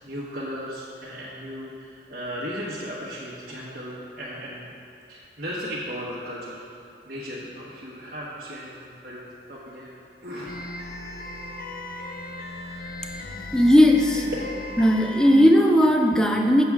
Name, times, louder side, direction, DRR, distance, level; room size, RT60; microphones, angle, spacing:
voice 1, 0.0-4.7 5.1-6.6 7.0-9.9 10.2-10.6 11.3-11.5 13.3-13.5, equal, 55° right, -9 dB, 1.2 m, -36 dB
sound 1, 10.5-15.5, left 2 dB, 55° left, 0.6 m, -37 dB
voice 2, 13.5-14.2 14.8-16.6, equal, 5° left, 3 dB, 0.3 m, -17 dB
7.2 x 7.0 x 3.6 m, 2.5 s
head